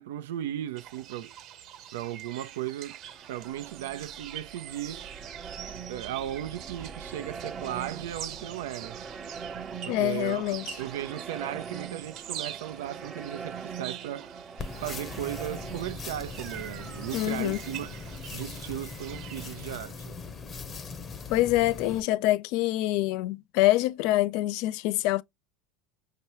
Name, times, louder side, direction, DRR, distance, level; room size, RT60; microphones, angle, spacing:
voice 1, 0.0-1.3 1.9-3.0 3.3-5.0 5.9-9.0 9.8-14.3 14.8-17.9 18.3-20.2, right 12 dB, 80° right, 0.5 m, -36 dB
sound 1, 0.8-19.8, right 10 dB, 55° right, 1.2 m, -44 dB
sound 2, 2.9-19.5, right 6 dB, 30° right, 0.9 m, -43 dB
voice 2, 9.9-10.7 17.1-17.6 21.3-25.2, left 16 dB, 65° left, 0.4 m, -25 dB
sound 3, 14.6-22.0, left 4 dB, 30° left, 0.8 m, -40 dB
5.5 x 2.9 x 3.0 m
supercardioid pair, 105°, 0 cm